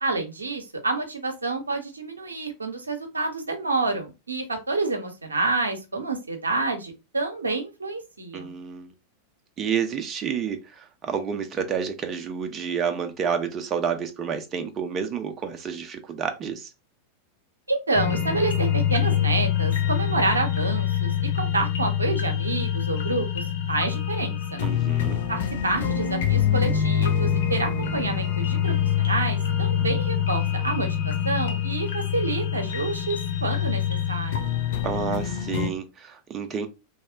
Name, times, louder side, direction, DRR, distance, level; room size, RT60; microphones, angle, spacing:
voice 1, 0.0-8.5 17.7-24.6 25.3-34.5, right 3 dB, 80° right, 0.6 m, -28 dB
voice 2, 8.3-8.9 9.6-16.7 24.6-25.2 34.8-36.7, right 7 dB, 25° right, 0.4 m, -29 dB
sound 1, 17.9-35.7, left 9 dB, 60° left, 0.6 m, -25 dB
3.0 x 2.0 x 2.4 m
figure-of-eight pair, 90°, 0 cm